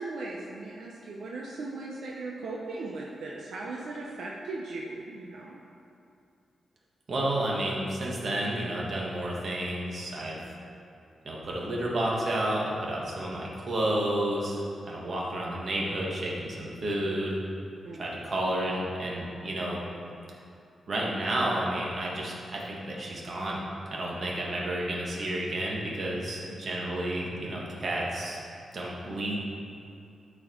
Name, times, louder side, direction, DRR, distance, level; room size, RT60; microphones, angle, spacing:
voice 1, 0.0-5.6 17.8-18.0, right 3 dB, 75° right, -3 dB, 0.8 m, -38 dB
voice 2, 7.1-10.4 11.2-17.4 17.9-19.8 20.9-23.6 23.9-28.4 28.7-29.4, right 1 dB, 45° right, -4 dB, 1.6 m, -31 dB
12.5 x 4.5 x 4.5 m, 2.6 s
wide cardioid pair, 160°, 0 cm